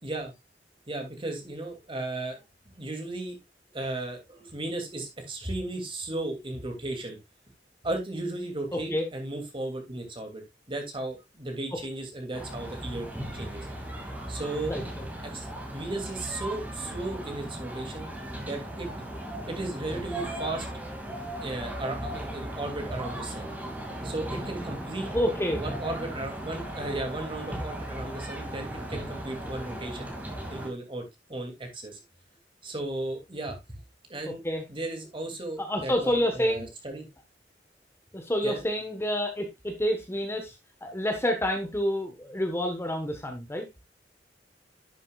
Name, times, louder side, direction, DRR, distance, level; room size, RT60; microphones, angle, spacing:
voice 1, 0.0-0.3 0.9-2.4 2.7-3.4 3.7-7.2 7.8-10.4 10.7-13.1 13.3-13.7 14.3-14.7 15.2-15.5 15.7-18.1 18.5-18.9 19.5-20.7 21.4-23.5 24.0-25.1 25.6-30.1 30.5-32.0 32.6-33.6 34.1-34.4 34.7-37.0 38.4-38.6, right 2 dB, 30° right, 3 dB, 2.8 m, -35 dB
voice 2, 8.7-9.1 14.6-15.0 25.1-25.6 34.4-34.6 35.6-36.7 38.1-40.6 40.8-43.7, equal, 15° left, 4 dB, 1.3 m, -28 dB
sound 1, 12.3-30.7, right 1 dB, 10° right, 2.5 m, -37 dB
11.0 x 7.3 x 2.4 m, 0.20 s
head